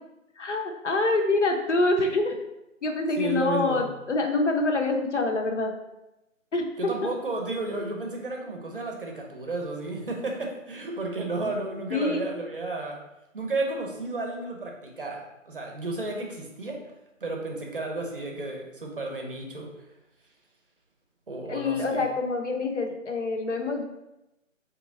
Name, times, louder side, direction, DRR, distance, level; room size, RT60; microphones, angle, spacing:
voice 1, 0.4-2.3 2.8-5.7 6.5-6.6 7.0-7.2 11.9-12.2 21.5-23.8, left 2 dB, 60° left, 3 dB, 0.7 m, -26 dB
voice 2, 3.2-3.9 6.8-13.1 13.3-16.9 17.2-19.7 21.3-22.1, right 2 dB, 40° right, 1 dB, 0.7 m, -32 dB
3.6 x 2.9 x 3.8 m, 0.92 s
figure-of-eight pair, 155°, 41 cm